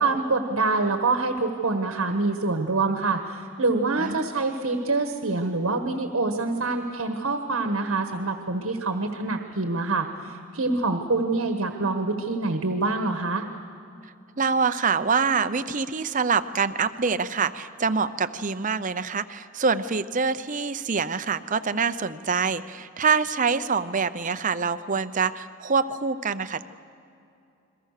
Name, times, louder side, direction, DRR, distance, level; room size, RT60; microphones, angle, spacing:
voice 1, 0.0-13.4, right 3 dB, 75° right, 6 dB, 1.5 m, -26 dB
voice 2, 14.4-26.6, right 5 dB, 40° right, 11 dB, 0.7 m, -25 dB
29.0 x 22.5 x 6.7 m, 2.6 s
head